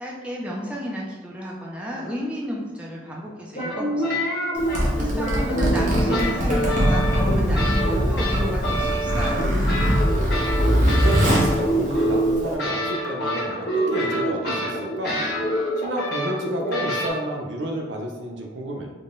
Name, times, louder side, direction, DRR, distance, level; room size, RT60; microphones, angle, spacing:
voice 1, 0.0-4.2 5.0-9.6, equal, 5° right, -4 dB, 0.4 m, -32 dB
sound 1, 3.5-17.1, equal, 55° left, 1.2 m, -26 dB
Zipper (clothing), 4.6-12.5, equal, 40° right, 0.9 m, -22 dB
voice 2, 10.9-15.2 15.8-18.9, right 1 dB, 70° right, 1 dB, 0.6 m, -30 dB
3.7 x 2.1 x 3.7 m, 1.4 s
head